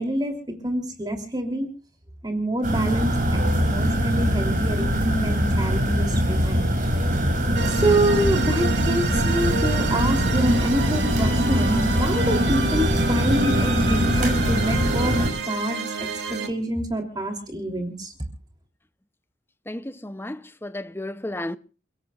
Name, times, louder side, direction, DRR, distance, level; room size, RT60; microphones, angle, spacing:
voice 1, 0.0-1.7 2.2-6.8 7.6-15.2 15.5-16.1 16.5-18.1, right 1 dB, 25° right, 3.1 m, -26 dB
sound 1, 2.6-15.3, equal, 45° right, 6.2 m, -22 dB
sound 2, 7.6-16.5, right 2 dB, 80° right, 2.7 m, -29 dB
voice 2, 19.7-21.6, left 1 dB, 15° left, 0.7 m, -33 dB
29.5 x 17.0 x 2.4 m
head